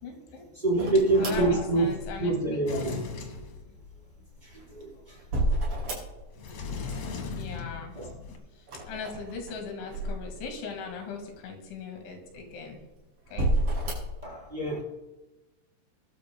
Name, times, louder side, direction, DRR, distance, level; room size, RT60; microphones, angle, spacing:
voice 1, 0.0-0.5 1.2-2.6 7.3-8.0 8.9-12.8 13.3-13.5, left 5 dB, 85° left, 3 dB, 4.4 m, -39 dB
voice 2, 0.6-1.9 2.2-3.0 4.4-5.2 7.9-8.1 14.2-14.8, right 2 dB, 10° right, -7 dB, 4.2 m, -26 dB
sound 1, 0.8-2.4 4.3-6.5 6.8-7.5 8.6-10.7 11.3-11.4 12.2-12.8 13.3-14.2, right 1 dB, 40° right, 6.5 m, -31 dB
Sliding door, 2.7-4.2 6.3-8.4, left 5 dB, 65° left, 1.6 m, -38 dB
20.5 x 12.5 x 2.2 m, 1.0 s
omnidirectional pair, 5.3 m